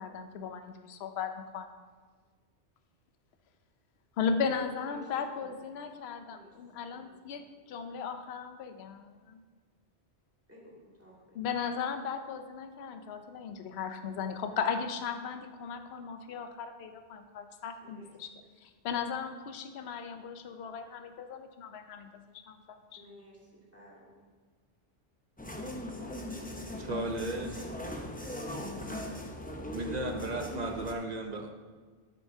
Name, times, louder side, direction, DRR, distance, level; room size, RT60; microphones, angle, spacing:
voice 1, 0.0-1.7 4.2-9.4 11.3-18.3 18.6-23.0, left 6 dB, 65° left, 7 dB, 0.9 m, -36 dB
voice 2, 4.7-5.6 6.3-6.6 6.9-7.2 10.5-11.4 17.8-18.5 22.9-24.2, equal, 10° right, -6 dB, 2.3 m, -55 dB
sound 1, 25.4-30.9, left 1 dB, 10° left, 0.5 m, -39 dB
voice 3, 26.8-27.7 29.7-31.5, right 2 dB, 45° right, 3 dB, 0.7 m, -35 dB
11.5 x 8.2 x 2.7 m, 1.5 s
omnidirectional pair, 1.2 m